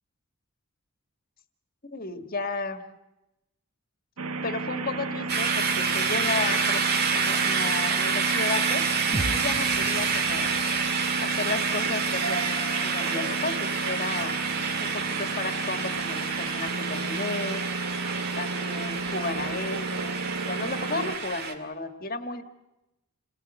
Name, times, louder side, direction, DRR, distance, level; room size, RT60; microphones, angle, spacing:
voice 1, 1.8-2.8 4.4-6.8 7.1-8.9 9.3-10.5 11.2-14.4 14.8-17.6 18.4-20.2 20.5-22.4, left 3 dB, 40° left, 8 dB, 1.7 m, -33 dB
sound 1, 4.2-21.2, right 3 dB, 90° right, 1.4 m, -33 dB
sound 2, 5.3-21.5, right 5 dB, 45° right, 2.2 m, -28 dB
sound 3, 9.1-13.1, right 1 dB, 30° right, 1.2 m, -38 dB
28.0 x 18.5 x 8.1 m, 0.95 s
head